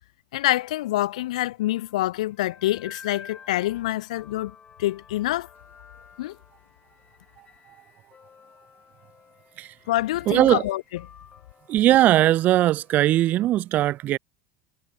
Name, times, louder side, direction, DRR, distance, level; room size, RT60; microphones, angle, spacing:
voice 1, 0.3-4.5 4.8-5.5 6.2-6.4 9.9-10.8, left 16 dB, 85° left, 0.4 m, -26 dB
sound 1, 0.6-13.3, left 6 dB, 30° left, 4.4 m, -52 dB
voice 2, 10.3-10.6 11.7-14.2, right 14 dB, 50° right, 0.6 m, -19 dB
hypercardioid pair, 90°, 3 cm